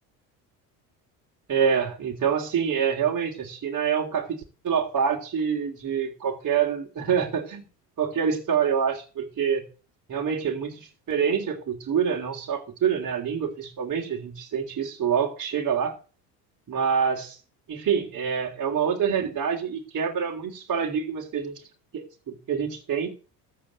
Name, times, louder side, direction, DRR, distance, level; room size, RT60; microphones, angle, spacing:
voice 1, 1.5-7.6 8.0-9.6 10.1-16.0 16.7-17.4 17.7-21.5 21.9-23.1, right 7 dB, 40° right, -1 dB, 3.5 m, -26 dB
14.5 x 5.1 x 8.8 m, 0.35 s
hypercardioid pair, 75°, 47 cm